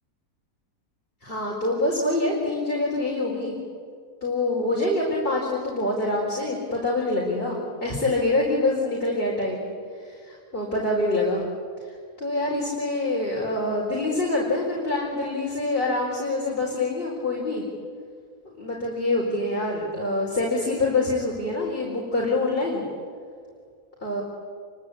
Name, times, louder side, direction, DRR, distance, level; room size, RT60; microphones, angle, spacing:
voice 1, 1.2-3.6 4.2-9.7 10.0-11.4 12.2-17.6 18.6-22.8 24.0-24.2, left 2 dB, 35° left, -3 dB, 4.8 m, -25 dB
28.5 x 23.5 x 8.6 m, 2.1 s
omnidirectional pair, 1.7 m